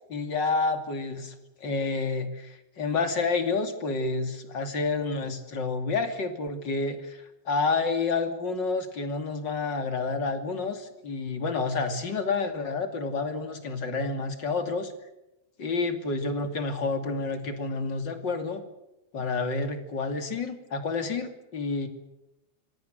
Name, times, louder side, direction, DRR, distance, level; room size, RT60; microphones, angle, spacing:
voice 1, 0.1-1.3 1.6-14.9 15.6-18.6 19.1-21.9, left 4 dB, 30° left, 7 dB, 2.5 m, -29 dB
26.0 x 25.0 x 6.7 m, 0.93 s
omnidirectional pair, 5.1 m